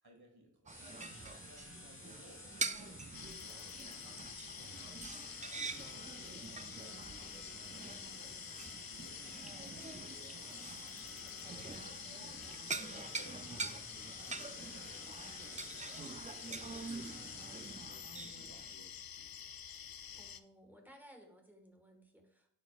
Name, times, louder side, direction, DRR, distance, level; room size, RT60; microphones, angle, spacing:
voice 1, 0.0-4.7 5.4-9.8 10.1-10.5 11.0-17.5 17.9-19.5 20.1-20.2, right 1 dB, 75° right, 0 dB, 1.8 m, -62 dB
sound 1, 0.7-18.2, left 2 dB, 35° left, 1.2 m, -53 dB
sound 2, 0.7-18.7, right 4 dB, 20° right, 0.3 m, -46 dB
sound 3, 3.1-20.4, left 8 dB, 65° left, 0.5 m, -49 dB
voice 2, 20.1-22.5, equal, 5° right, 2 dB, 1.4 m, -59 dB
10.0 x 4.2 x 2.3 m, 0.66 s
wide cardioid pair, 45°, 38 cm